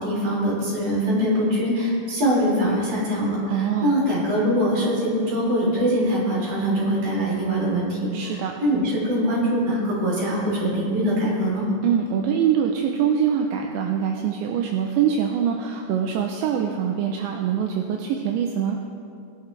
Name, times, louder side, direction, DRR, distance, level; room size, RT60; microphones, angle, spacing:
voice 1, 0.0-11.7, equal, 45° right, -5 dB, 4.7 m, -23 dB
voice 2, 3.5-3.9 8.1-8.5 11.8-18.8, right 8 dB, 80° right, 2 dB, 2.8 m, -24 dB
23.0 x 11.5 x 3.3 m, 2.5 s
omnidirectional pair, 5.7 m